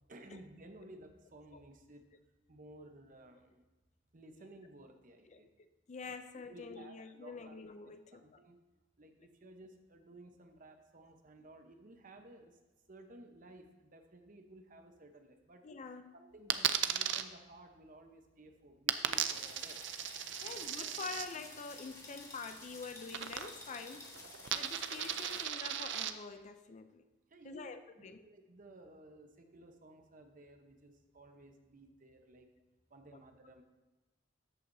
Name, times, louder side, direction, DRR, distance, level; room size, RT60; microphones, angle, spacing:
voice 1, 0.1-2.1 2.5-3.6 4.1-5.5 6.3-7.6 8.1-8.6 9.0-12.6 12.9-15.6 16.1-19.8 20.4-20.7 27.3-32.5 32.9-33.6, right 2 dB, 45° right, 5 dB, 0.9 m, -56 dB
voice 2, 5.3-8.2 15.6-16.1 20.4-24.1 24.5-27.0 27.4-28.2 33.1-33.2, left 4 dB, 35° left, 10 dB, 0.4 m, -46 dB
Coin (dropping), 16.5-17.2 18.9-21.3 23.1-23.8 24.0-26.1, right 10 dB, 65° right, 0.5 m, -36 dB
sound 1, 19.1-25.5, left 2 dB, 15° left, 1.6 m, -51 dB
13.0 x 8.5 x 2.7 m, 1.1 s
head